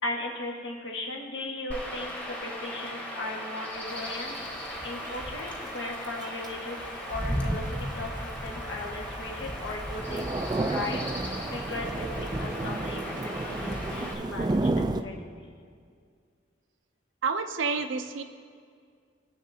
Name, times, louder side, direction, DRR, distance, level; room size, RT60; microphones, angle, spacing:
voice 1, 0.0-4.4 4.8-6.8 7.1-7.6 7.9-8.1 8.4-10.2 10.6-15.3, left 2 dB, 70° left, -1 dB, 1.5 m, -37 dB
Chirp tweet / Wind / Stream, 1.7-14.1, equal, 10° left, 1.3 m, -36 dB
Thunder / Rain, 3.9-15.0, right 2 dB, 20° right, 0.3 m, -33 dB
voice 2, 17.2-18.2, right 5 dB, 85° right, 8 dB, 0.6 m, -29 dB
21.5 x 7.2 x 2.8 m, 2.2 s
head